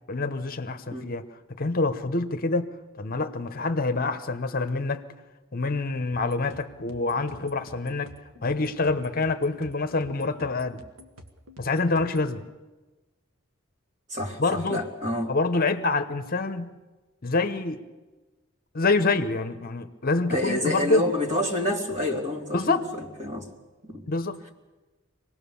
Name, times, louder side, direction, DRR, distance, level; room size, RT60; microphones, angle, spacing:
voice 1, 0.1-1.2 1.6-5.0 5.5-8.1 8.4-10.8 11.6-12.4 14.4-14.8 15.3-16.7 17.2-17.8 18.7-21.1 22.5-22.9 24.1-24.4, left 3 dB, 45° left, 9 dB, 1.0 m, -26 dB
sound 1, 6.1-12.3, equal, 85° right, 1.8 m, -50 dB
voice 2, 14.1-15.3 20.3-23.5 23.8-24.0, left 1 dB, 35° right, 1 dB, 2.9 m, -28 dB
25.0 x 18.5 x 7.1 m, 1.2 s
head